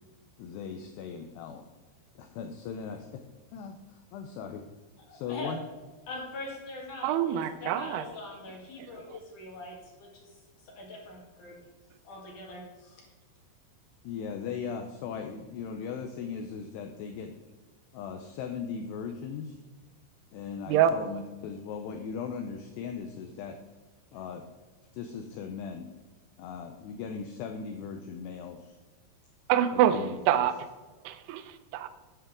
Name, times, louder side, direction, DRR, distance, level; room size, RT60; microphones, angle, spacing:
voice 1, 0.4-1.6 2.2-3.2 3.5-4.7 5.1-5.6 14.0-17.4 17.9-19.6 20.3-23.6 24.1-24.4 24.9-25.9 26.4-28.8 29.9-30.5, left 6 dB, 85° left, 5 dB, 2.4 m, -38 dB
voice 2, 5.1-5.5 6.1-10.3 10.6-11.6 12.0-13.1, left 2 dB, 55° left, -2 dB, 2.6 m, -42 dB
voice 3, 7.0-8.1 8.8-9.2 20.7-20.9 29.5-30.5 31.0-31.9, right 10 dB, 90° right, 11 dB, 2.3 m, -26 dB
11.5 x 9.0 x 3.6 m, 1.3 s
omnidirectional pair, 5.6 m